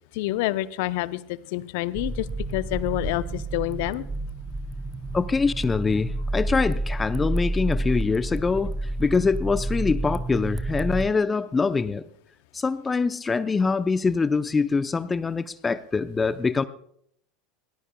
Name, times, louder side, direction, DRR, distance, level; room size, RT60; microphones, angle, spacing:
voice 1, 0.1-4.0, left 17 dB, 60° left, 14 dB, 0.8 m, -28 dB
sound 1, 1.9-11.1, right 2 dB, 20° right, 0.7 m, -30 dB
voice 2, 5.1-12.0 12.5-16.6, left 4 dB, 20° left, 12 dB, 0.7 m, -24 dB
23.0 x 18.0 x 2.3 m, 0.67 s
hypercardioid pair, 80°, 0 cm